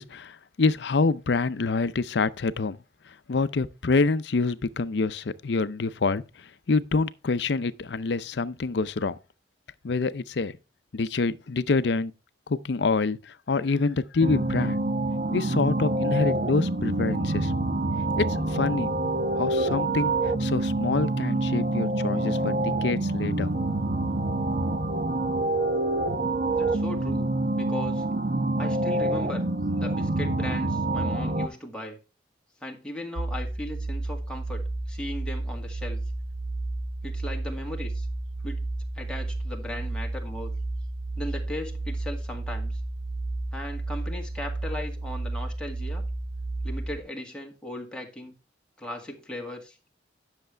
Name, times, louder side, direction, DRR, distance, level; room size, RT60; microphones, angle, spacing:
voice 1, 0.0-2.8 3.3-9.2 9.8-10.5 10.9-12.1 12.5-14.8 15.3-17.5 18.2-19.0 19.4-20.1 20.4-23.5, left 4 dB, 65° left, 0.6 m, -26 dB
sound 1, 14.2-31.5, right 2 dB, 45° right, 1.0 m, -26 dB
voice 2, 26.6-28.1 28.6-29.4 29.7-32.0 32.6-36.0 37.0-38.1 38.4-38.6 39.0-40.5 41.2-42.8 43.5-46.0 46.6-48.4 48.8-49.8, left 1 dB, 5° left, 2.0 m, -37 dB
sound 2, 33.2-47.0, right 2 dB, 75° right, 1.7 m, -32 dB
10.5 x 6.6 x 3.3 m
head